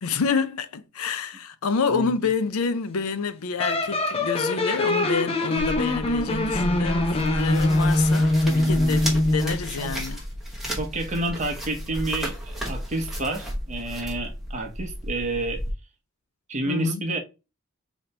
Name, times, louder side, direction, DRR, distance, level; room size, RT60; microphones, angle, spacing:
voice 1, 0.0-10.2 16.7-17.0, left 5 dB, 85° left, 0.5 m, -28 dB
sound 1, 3.6-9.6, left 2 dB, 25° left, 0.5 m, -23 dB
sound 2, 5.6-15.7, equal, ahead, 0.9 m, -33 dB
voice 2, 8.4-9.0 9.8-10.0 10.7-15.6 16.5-17.2, right 2 dB, 35° right, 0.9 m, -30 dB
4.1 x 2.9 x 3.2 m
head